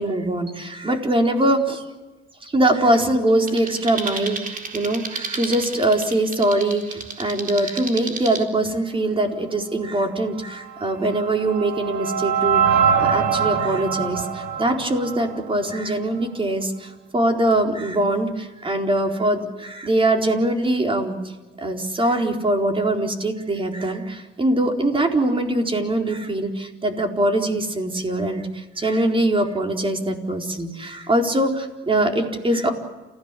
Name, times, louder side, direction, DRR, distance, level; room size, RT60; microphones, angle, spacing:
voice 1, 0.0-1.8 2.4-21.3 21.6-32.7, right 1 dB, 25° right, 3 dB, 4.4 m, -22 dB
sound 1, 3.5-8.4, right 4 dB, 45° right, 4.0 m, -33 dB
sound 2, 10.7-15.9, right 7 dB, 90° right, 3.3 m, -23 dB
29.5 x 16.0 x 8.5 m, 1.2 s
cardioid pair, 90°, 20 cm